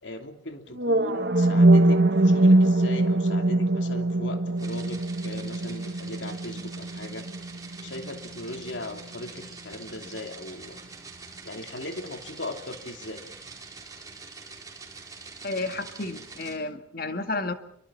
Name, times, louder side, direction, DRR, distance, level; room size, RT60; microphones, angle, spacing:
voice 1, 0.0-7.3 7.8-10.8 11.4-13.2, left 2 dB, 75° left, 5 dB, 3.0 m, -38 dB
sound 1, 0.8-8.8, right 2 dB, 60° right, 1.5 m, -22 dB
sound 2, 4.6-16.6, right 4 dB, 20° right, 4.6 m, -45 dB
voice 2, 15.4-17.5, left 3 dB, 50° left, 7 dB, 2.0 m, -31 dB
27.0 x 24.5 x 5.7 m, 0.68 s
head